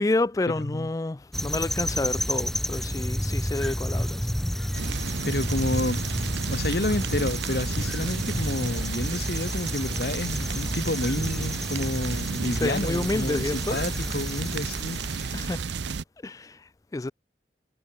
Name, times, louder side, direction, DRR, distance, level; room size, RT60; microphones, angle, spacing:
voice 1, 0.0-4.3 12.5-13.8 15.3-15.8 16.2-17.1, left 2 dB, 20° left, 0.3 m, -29 dB
sound 1, 1.3-15.7, equal, ahead, 0.7 m, -31 dB
sound 2, 4.7-16.0, right 5 dB, 85° right, 0.7 m, -33 dB
voice 2, 5.2-6.0 6.4-15.3, left 1 dB, 60° left, 1.8 m, -30 dB
head